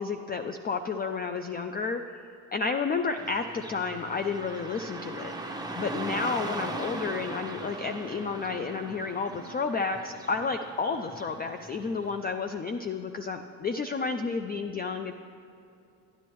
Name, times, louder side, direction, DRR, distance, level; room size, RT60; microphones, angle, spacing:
voice 1, 0.0-2.0 2.5-5.3 5.8-15.1, left 4 dB, 25° left, 7 dB, 0.3 m, -31 dB
Car passing by / Traffic noise roadway noise, 3.2-12.2, right 2 dB, 10° right, 0.8 m, -39 dB
10.5 x 10.5 x 3.0 m, 2.6 s
supercardioid pair, 65°, 44 cm